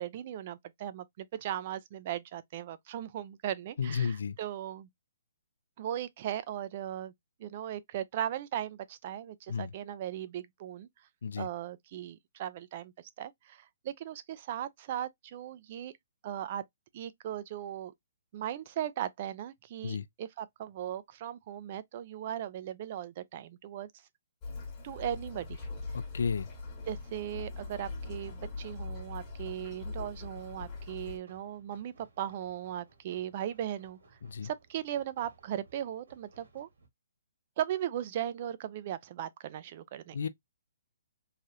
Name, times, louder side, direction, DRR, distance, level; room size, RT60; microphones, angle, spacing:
voice 1, 0.0-4.9 5.8-7.1 7.4-10.9 11.4-15.9 16.2-16.6 16.9-17.9 18.3-23.9 24.8-25.6 26.9-34.0 34.4-36.7 37.6-40.2, right 11 dB, 35° right, 0.4 m, -38 dB
voice 2, 3.8-4.4 9.5-9.7 11.2-11.5 19.8-20.1 25.9-26.5 34.2-34.5 40.1-40.3, left 6 dB, 75° left, 0.5 m, -32 dB
sound 1, 24.4-31.2, left 3 dB, 20° left, 1.2 m, -41 dB
sound 2, 30.2-36.9, right 3 dB, 75° right, 1.6 m, -61 dB
3.2 x 2.4 x 2.7 m
hypercardioid pair, 165°, 0 cm